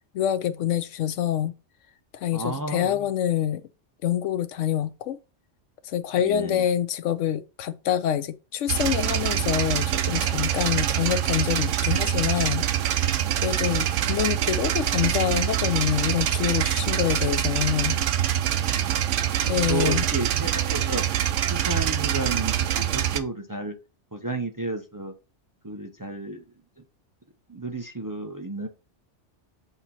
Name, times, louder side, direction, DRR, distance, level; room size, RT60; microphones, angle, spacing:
voice 1, 0.1-1.5 2.2-3.6 4.0-5.2 5.8-12.7 13.4-18.0 19.5-20.0, left 10 dB, 85° left, 1.0 m, -26 dB
voice 2, 2.3-3.1 6.2-6.7 13.5-14.0 18.6-19.0 19.5-21.0 21.5-23.8 24.1-25.1 25.6-26.4 27.5-28.7, right 2 dB, 20° right, 0.6 m, -33 dB
sound 1, 8.7-23.2, right 11 dB, 85° right, 1.0 m, -25 dB
8.0 x 2.9 x 4.1 m
omnidirectional pair, 1.2 m